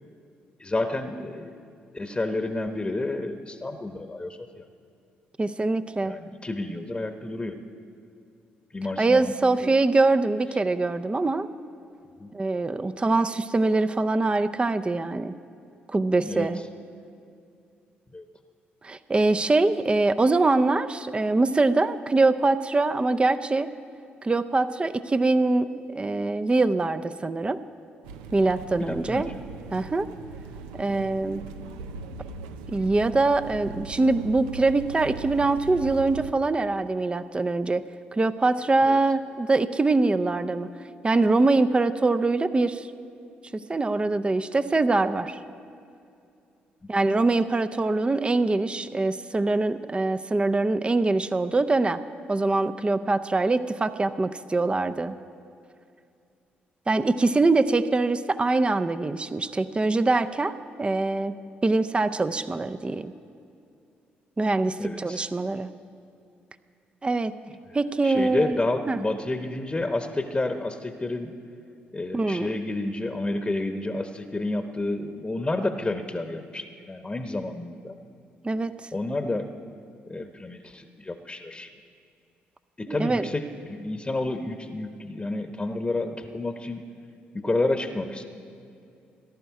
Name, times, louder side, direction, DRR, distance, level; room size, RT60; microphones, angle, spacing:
voice 1, 0.6-1.6 1.9-4.6 6.0-7.6 8.7-9.3 9.6-9.7 12.2-12.3 16.2-16.5 18.1-18.2 28.8-29.2 38.9-39.0 46.8-46.9 64.8-65.3 68.0-71.3 71.9-78.0 78.9-79.5 80.1-81.7 82.8-86.8 87.3-88.2, left 2 dB, 20° left, 6 dB, 1.0 m, -30 dB
voice 2, 5.4-6.2 9.0-11.5 12.3-15.3 15.9-16.6 18.8-23.7 24.2-27.6 28.3-29.3 29.7-30.1 30.8-31.4 32.7-37.9 38.1-40.7 41.0-42.9 43.7-45.4 46.9-52.0 52.3-55.2 56.9-63.1 64.4-65.7 67.0-67.3 67.7-68.5 68.9-69.0 72.1-72.5 78.4-78.7 82.9-83.3, right 3 dB, 25° right, 11 dB, 0.5 m, -23 dB
sound 1, 28.0-36.3, right 5 dB, 90° right, 0.5 m, -40 dB
18.5 x 11.0 x 4.8 m, 2.5 s
hypercardioid pair, 50°, 5 cm